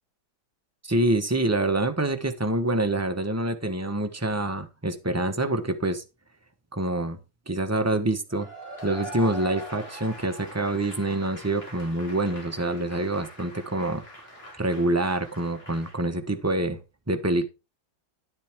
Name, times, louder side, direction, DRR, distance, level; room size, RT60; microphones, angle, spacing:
voice 1, 0.8-6.0 6.7-7.2 7.5-8.5 8.8-14.0 14.6-16.8 17.1-17.5, right 2 dB, 15° right, 0.6 m, -26 dB
Cheering / Applause / Crowd, 8.3-16.0, equal, 30° left, 3.4 m, -42 dB
11.0 x 7.6 x 3.6 m
omnidirectional pair, 2.2 m